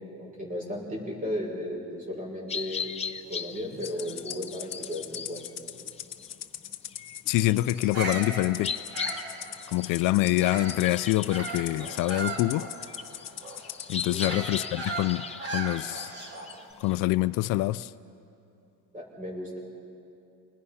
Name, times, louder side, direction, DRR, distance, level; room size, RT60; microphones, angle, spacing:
voice 1, 0.2-2.9 3.3-5.4 14.1-14.4 18.9-19.6, left 1 dB, 25° right, -2 dB, 6.2 m, -35 dB
sound 1, 2.5-17.0, left 6 dB, 20° left, 0.6 m, -39 dB
Rattle (instrument), 3.8-14.3, left 12 dB, 50° left, 1.0 m, -41 dB
voice 2, 7.3-8.7 9.7-12.7 13.9-15.2 15.5-16.1 16.8-17.9, left 17 dB, 70° left, 15 dB, 0.5 m, -25 dB
Bird vocalization bird call bird song, 7.7-10.9 11.3-16.6, right 2 dB, 45° right, 3.5 m, -37 dB
29.5 x 21.0 x 5.7 m, 2.7 s
cardioid pair, 140°, 34 cm